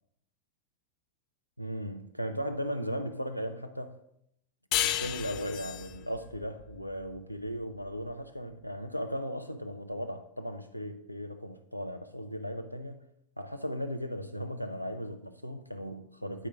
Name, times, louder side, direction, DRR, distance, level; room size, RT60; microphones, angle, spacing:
voice 1, 1.6-4.0 4.8-13.1 13.4-16.5, equal, 90° left, 0.6 m, -37 dB
sound 1, 4.7-7.9, left 12 dB, 40° left, 0.4 m, -34 dB
9.6 x 5.0 x 3.4 m
figure-of-eight pair, 90°, 0 cm